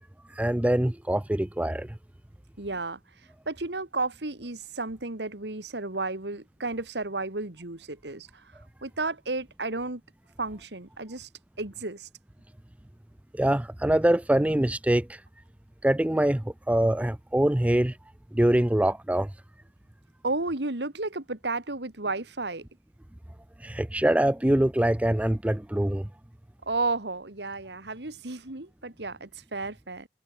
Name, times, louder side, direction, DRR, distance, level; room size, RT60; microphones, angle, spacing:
voice 1, 0.4-2.0 13.3-15.2 15.8-18.0 18.3-19.3 23.6-26.1, right 1 dB, 10° right, 0.4 m, -24 dB
voice 2, 2.6-3.0 3.5-8.5 8.8-10.0 10.4-11.3 11.6-12.1 20.2-22.7 26.7-30.1, right 3 dB, 70° right, 2.3 m, -32 dB
head